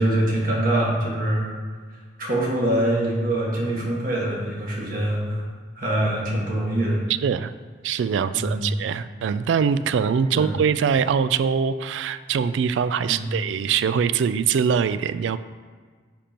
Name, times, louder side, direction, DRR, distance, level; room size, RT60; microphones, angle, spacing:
voice 1, 0.0-1.5 2.2-5.4 5.8-7.0 8.3-8.7 10.3-10.5 13.0-13.4, right 1 dB, 50° right, -4 dB, 1.6 m, -24 dB
voice 2, 7.8-15.4, right 6 dB, 80° right, 13 dB, 0.3 m, -23 dB
10.0 x 5.2 x 2.9 m, 1.6 s
head